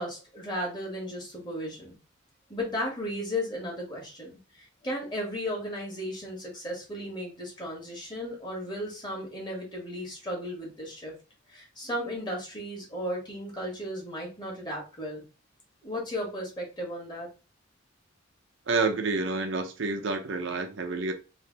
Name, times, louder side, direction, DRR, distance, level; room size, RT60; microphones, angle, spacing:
voice 1, 0.0-1.9 2.5-11.1 11.5-15.2 15.8-17.3, equal, 20° left, 1.5 m, -35 dB
voice 2, 18.7-21.1, right 3 dB, 65° right, 0.6 m, -28 dB
3.3 x 2.7 x 3.8 m
head